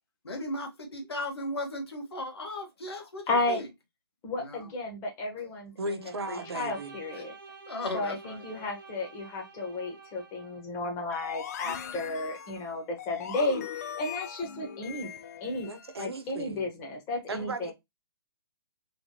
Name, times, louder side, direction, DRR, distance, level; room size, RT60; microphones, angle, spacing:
voice 1, 0.2-3.7 4.4-4.7 7.1-7.3 7.7-8.7 11.6-12.0, left 1 dB, 85° left, 1.5 m, -37 dB
voice 2, 3.3-3.6 4.2-7.3 7.9-15.1 15.4-15.7 16.0-17.7, left 2 dB, 20° left, 1.2 m, -33 dB
voice 3, 5.8-7.0 15.7-16.7 17.3-17.7, right 2 dB, 90° right, 0.8 m, -36 dB
Bowed string instrument, 6.0-10.6, right 4 dB, 55° right, 1.0 m, -49 dB
sound 1, 11.1-16.0, left 9 dB, 40° left, 0.4 m, -40 dB
3.4 x 3.0 x 2.7 m
hypercardioid pair, 150°, 13 cm